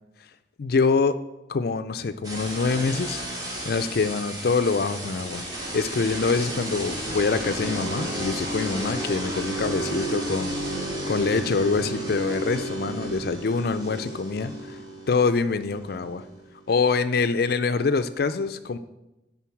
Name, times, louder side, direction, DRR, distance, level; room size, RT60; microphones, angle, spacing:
voice 1, 0.6-1.2 1.5-3.2 3.6-14.8 15.1-16.2 16.7-18.8, left 4 dB, 60° left, 11 dB, 0.4 m, -25 dB
sound 1, 2.2-16.8, right 1 dB, 20° right, 2.0 m, -32 dB
10.5 x 4.0 x 7.1 m, 0.95 s
head